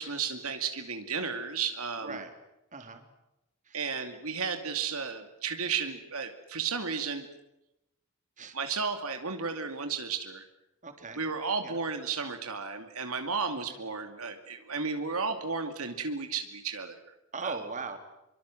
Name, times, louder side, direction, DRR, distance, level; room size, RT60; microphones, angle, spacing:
voice 1, 0.0-2.2 3.7-7.3 8.5-10.4 11.2-17.0 17.4-17.6, right 5 dB, 75° right, 6 dB, 2.5 m, -33 dB
voice 2, 2.7-3.0 3.6-3.8 8.4-8.6 10.8-11.2 11.6-11.8 13.7-13.8 17.3-18.0, right 4 dB, 35° right, 6 dB, 3.3 m, -39 dB
26.0 x 24.0 x 7.8 m, 0.89 s
head